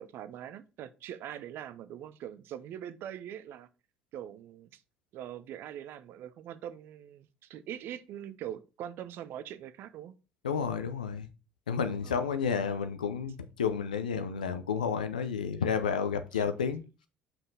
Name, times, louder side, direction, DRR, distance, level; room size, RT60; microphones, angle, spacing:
voice 1, 0.0-3.7 4.1-4.8 5.1-10.1 12.0-12.3 16.3-16.4, right 10 dB, 60° right, 0.7 m, -42 dB
voice 2, 10.4-11.3 11.7-16.8, left 6 dB, 90° left, 0.7 m, -31 dB
5.8 x 5.4 x 4.0 m
hypercardioid pair, 55°, 4 cm